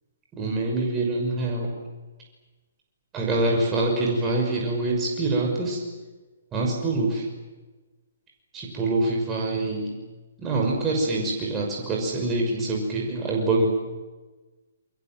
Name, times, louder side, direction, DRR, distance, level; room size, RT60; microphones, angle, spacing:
voice 1, 0.4-1.7 3.1-5.8 6.5-7.3 8.5-9.9 10.4-13.7, right 2 dB, 20° right, -1 dB, 6.1 m, -25 dB
29.0 x 23.5 x 7.8 m, 1.2 s
figure-of-eight pair, 130°, 0 cm